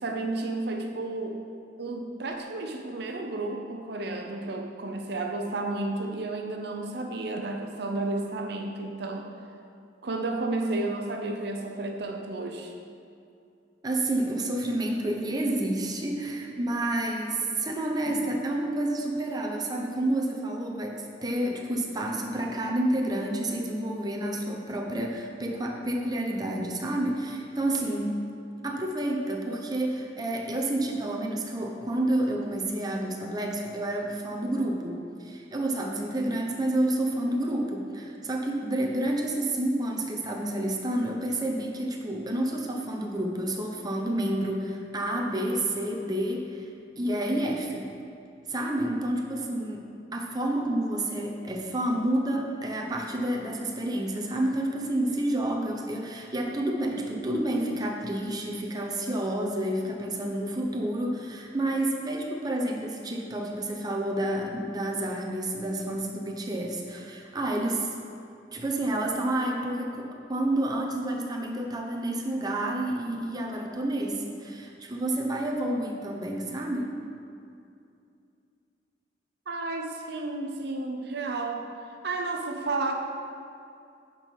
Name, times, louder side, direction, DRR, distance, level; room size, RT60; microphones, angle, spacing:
voice 1, 0.0-1.4 1.8-9.3 10.0-12.7 79.5-81.7 82.0-82.9, right 2 dB, 60° right, 3 dB, 0.7 m, -32 dB
voice 2, 13.8-28.2 28.6-46.7 47.0-47.9 48.5-49.8 50.1-67.9 68.5-77.0, right 1 dB, 20° right, 0 dB, 0.8 m, -29 dB
10.5 x 4.6 x 5.3 m, 2.5 s
head